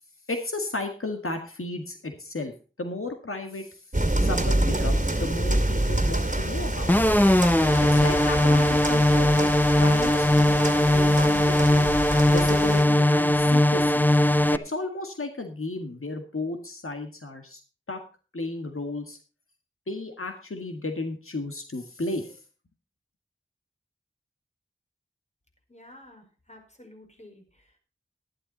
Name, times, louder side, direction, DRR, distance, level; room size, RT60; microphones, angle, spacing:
voice 1, 0.3-2.5 2.8-3.8 4.2-6.9 7.8-12.0 12.3-14.0 14.5-17.6 17.9-18.0 18.3-19.2 19.9-22.4, left 2 dB, 85° left, 6 dB, 1.8 m, -34 dB
sound 1, 3.9-12.8, right 1 dB, 35° right, 2.1 m, -27 dB
sound 2, 6.9-14.6, left 1 dB, 10° left, 0.7 m, -20 dB
voice 2, 25.7-27.8, left 1 dB, 35° left, 4 dB, 5.0 m, -51 dB
13.5 x 11.5 x 4.1 m, 0.34 s
wide cardioid pair, 45°, 21 cm